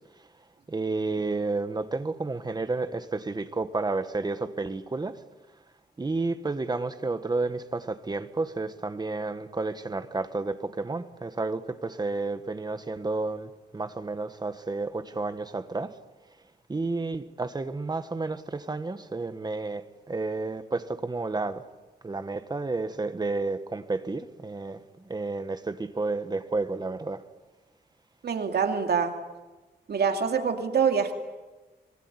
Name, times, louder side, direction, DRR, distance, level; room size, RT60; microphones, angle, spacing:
voice 1, 0.7-5.2 6.0-15.9 16.7-21.6 22.0-24.8 25.1-27.2, right 3 dB, 25° right, 1.4 m, -31 dB
voice 2, 28.2-29.1 29.9-31.1, right 6 dB, 70° right, 2.5 m, -25 dB
25.0 x 23.5 x 9.8 m
wide cardioid pair, 160°, 17 cm